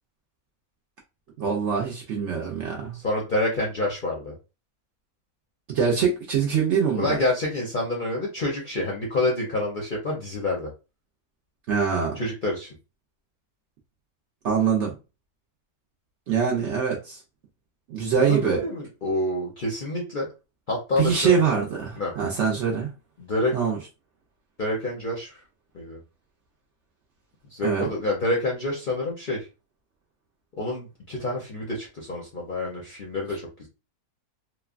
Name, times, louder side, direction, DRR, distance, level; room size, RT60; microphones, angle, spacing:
voice 1, 1.4-3.0 5.7-7.2 11.7-12.2 14.4-14.9 16.3-17.2 17.9-18.6 21.0-22.9 23.5-23.8 27.6-27.9, right 6 dB, 65° right, 0.8 m, -24 dB
voice 2, 3.0-4.3 7.0-10.7 12.2-12.7 18.2-20.3 20.7-21.4 22.0-22.1 23.2-23.5 24.6-25.4 25.7-26.0 27.5-29.4 30.6-33.4, left 2 dB, 45° left, 0.6 m, -27 dB
3.1 x 2.1 x 2.3 m
omnidirectional pair, 1.6 m